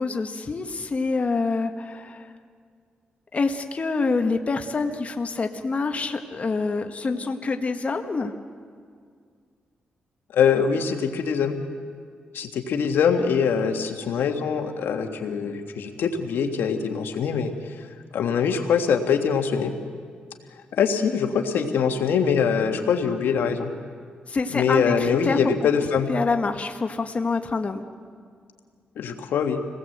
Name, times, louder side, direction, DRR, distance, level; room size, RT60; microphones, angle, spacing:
voice 1, 0.0-2.3 3.3-8.3 24.3-25.4 26.1-27.8, left 4 dB, 40° left, 5 dB, 1.5 m, -26 dB
voice 2, 10.3-11.6 12.3-17.5 18.1-19.7 20.7-23.7 24.5-26.1 29.0-29.6, left 6 dB, 85° left, 5 dB, 1.8 m, -23 dB
27.5 x 18.5 x 8.0 m, 2.1 s
cardioid pair, 80°, 4 cm